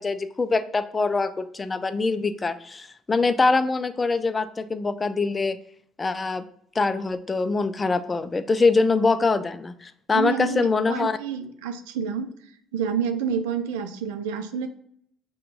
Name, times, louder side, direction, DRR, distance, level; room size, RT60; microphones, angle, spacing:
voice 1, 0.0-5.6 6.0-6.4 6.8-11.2, left 3 dB, 25° left, 11 dB, 0.4 m, -24 dB
voice 2, 10.1-12.3 12.7-14.7, right 7 dB, 80° right, 9 dB, 0.4 m, -28 dB
5.7 x 2.2 x 3.4 m, 0.65 s
hypercardioid pair, 60°, 0 cm